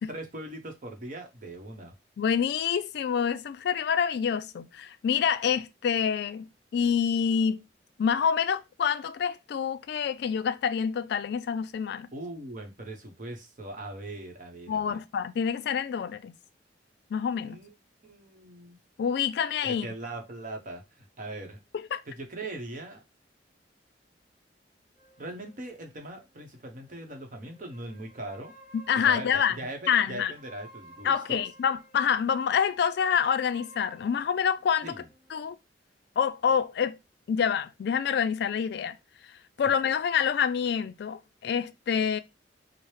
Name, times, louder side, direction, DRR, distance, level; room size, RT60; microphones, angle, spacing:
voice 1, 0.1-1.9 12.1-15.0 17.4-17.7 18.0-18.8 19.6-21.6 22.1-23.0 25.2-28.5 28.9-31.4 34.8-35.1, right 1 dB, 45° right, 0.8 m, -40 dB
voice 2, 2.2-7.6 8.0-12.1 14.7-16.3 17.1-17.6 19.0-19.9 21.9-22.0 28.7-29.6 29.9-30.3 31.0-34.9 35.3-35.5 36.2-37.0 37.3-39.0 39.6-42.2, left 7 dB, 65° left, 0.3 m, -27 dB
sound 1, 25.0-27.0 27.4-32.2 32.9-35.5, right 1 dB, 15° right, 1.1 m, -55 dB
4.5 x 2.0 x 3.2 m
head